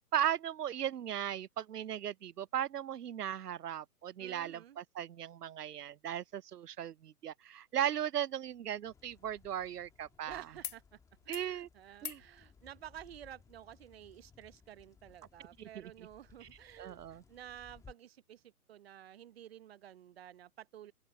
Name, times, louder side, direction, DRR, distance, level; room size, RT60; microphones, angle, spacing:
voice 1, 0.1-10.4 11.3-11.7 12.0-12.2 15.6-15.9 16.8-17.2, right 10 dB, 85° right, 0.5 m, -37 dB
voice 2, 4.2-4.8 10.3-11.0 11.2-20.9, right 11 dB, 40° right, 0.8 m, -52 dB
sound 1, 8.4-10.2 10.6-10.8 11.1-11.5 12.0-12.3 13.6-13.7, left 8 dB, 70° left, 1.0 m, -48 dB
sound 2, 8.8-17.9, left 5 dB, 5° left, 1.6 m, -62 dB
open air
figure-of-eight pair, 130°, 45 cm